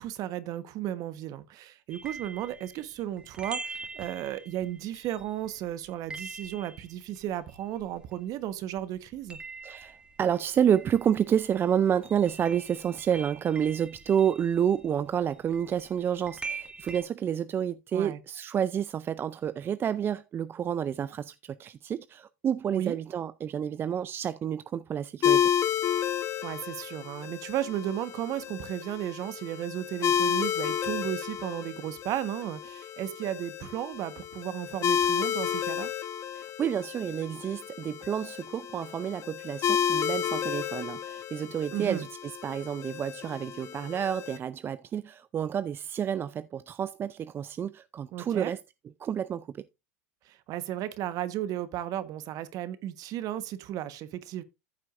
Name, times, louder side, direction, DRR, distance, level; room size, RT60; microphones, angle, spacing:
voice 1, 0.0-9.4 17.9-18.2 22.7-23.0 26.4-35.9 41.7-42.0 48.1-48.5 50.3-54.4, right 12 dB, 45° right, 1.3 m, -34 dB
sound 1, 1.9-8.5 8.8-17.0, right 4 dB, 10° right, 2.1 m, -44 dB
voice 2, 9.6-25.5 36.3-48.6 49.0-49.6, right 8 dB, 25° right, 0.4 m, -29 dB
sound 2, 25.2-44.4, left 9 dB, 35° left, 1.0 m, -31 dB
14.0 x 7.5 x 2.6 m
hypercardioid pair, 100°, 8 cm